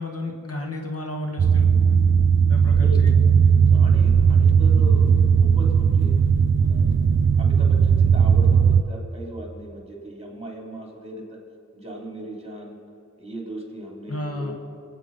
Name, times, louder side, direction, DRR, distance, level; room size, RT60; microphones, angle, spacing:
voice 1, 0.0-1.7 2.5-3.2 14.1-14.5, left 1 dB, 50° left, 1 dB, 1.6 m, -32 dB
sound 1, 1.4-8.8, right 6 dB, 40° right, 0.5 m, -17 dB
voice 2, 2.6-3.0 3.5-6.2 6.6-11.4 11.7-12.8 13.2-14.5, right 1 dB, 20° right, -1 dB, 3.1 m, -38 dB
22.0 x 8.7 x 5.4 m, 2.4 s
wide cardioid pair, 85°, 30 cm